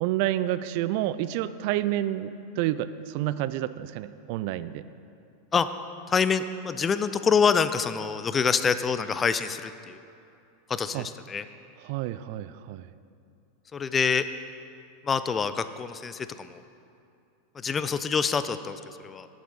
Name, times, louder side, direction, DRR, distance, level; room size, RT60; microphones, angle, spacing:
voice 1, 0.0-4.8 10.9-11.1 11.8-12.9, right 13 dB, 55° right, 15 dB, 0.3 m, -29 dB
voice 2, 6.1-10.0 10.7-11.4 13.7-14.3 15.0-16.6 17.5-19.3, left 6 dB, 25° left, 12 dB, 0.4 m, -26 dB
7.4 x 7.1 x 5.5 m, 2.6 s
hypercardioid pair, 95°, 0 cm